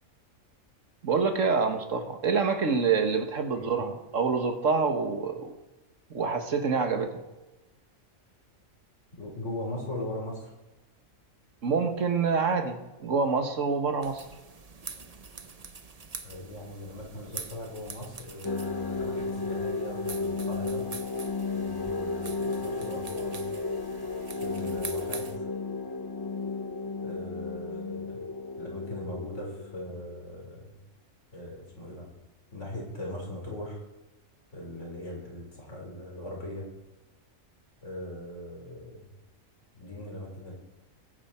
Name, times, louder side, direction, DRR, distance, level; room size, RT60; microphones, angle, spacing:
voice 1, 1.0-5.5 6.1-7.2 11.6-14.3, right 5 dB, 65° right, 5 dB, 1.8 m, -26 dB
voice 2, 9.2-10.5 16.2-20.9 21.5-23.4 24.4-25.4 27.0-28.2 28.6-30.7 31.3-32.1 32.5-33.8 34.5-36.7 37.8-39.0 39.7-40.5, left 1 dB, 55° left, -1 dB, 5.0 m, -39 dB
sound 1, 14.0-25.4, right 4 dB, 30° right, 0.8 m, -45 dB
sound 2, 18.4-30.2, left 3 dB, 35° left, 0.3 m, -33 dB
21.5 x 9.5 x 4.4 m, 1.0 s
omnidirectional pair, 1.4 m